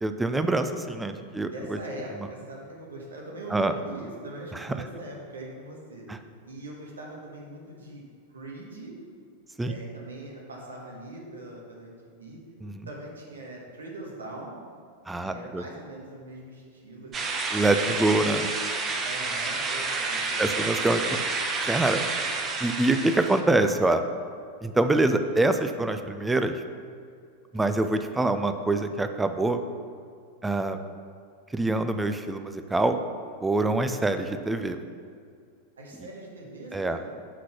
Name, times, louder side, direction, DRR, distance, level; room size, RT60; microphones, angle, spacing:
voice 1, 0.0-1.8 3.5-3.7 4.5-4.8 6.1-6.2 9.6-9.7 12.6-12.9 15.1-15.6 17.5-18.5 20.4-21.0 21.6-22.0 22.6-24.0 24.6-26.5 27.5-29.6 30.4-30.8 31.5-33.0 33.4-34.8 36.7-37.0, right 2 dB, 10° right, 8 dB, 0.5 m, -25 dB
voice 2, 1.3-6.0 6.4-8.0 8.3-8.9 9.6-12.4 12.8-14.5 15.2-18.2 19.0-20.6 21.0-21.1 22.9-23.0 27.5-27.8 35.8-37.1, right 1 dB, 70° right, -2 dB, 1.5 m, -42 dB
sound 1, 17.1-23.4, right 3 dB, 25° right, 0.9 m, -29 dB
6.3 x 6.0 x 5.7 m, 2.2 s
figure-of-eight pair, 90°, 0 cm